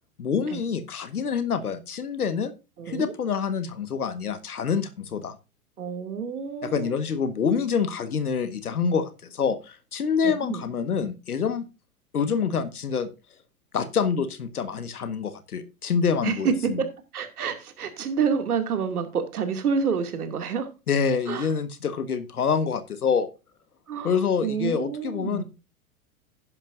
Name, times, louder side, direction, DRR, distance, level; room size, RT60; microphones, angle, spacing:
voice 1, 0.2-2.5 2.9-5.4 6.6-11.6 12.1-13.1 13.7-16.8 20.9-23.3 24.0-25.4, left 6 dB, 90° left, 1.5 m, -26 dB
voice 2, 2.8-3.1 5.8-6.9 10.2-10.6 16.2-16.9 17.1-20.7 21.3-21.5 23.9-24.1 24.4-25.4, right 6 dB, 80° right, 2.4 m, -28 dB
11.0 x 10.5 x 2.5 m
hypercardioid pair, 105°, 44 cm